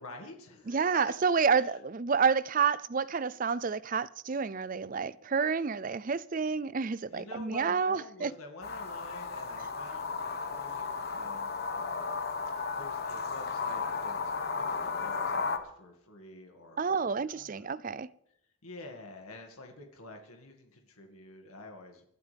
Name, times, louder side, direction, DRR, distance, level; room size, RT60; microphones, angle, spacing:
voice 1, 0.0-1.8 7.1-12.2 12.8-17.7 18.6-22.0, left 2 dB, 85° left, 2.1 m, -49 dB
voice 2, 0.7-8.3 16.8-18.1, right 5 dB, 40° right, 0.4 m, -29 dB
sound 1, 8.6-15.6, left 4 dB, 45° left, 1.4 m, -34 dB
25.0 x 12.0 x 3.5 m
head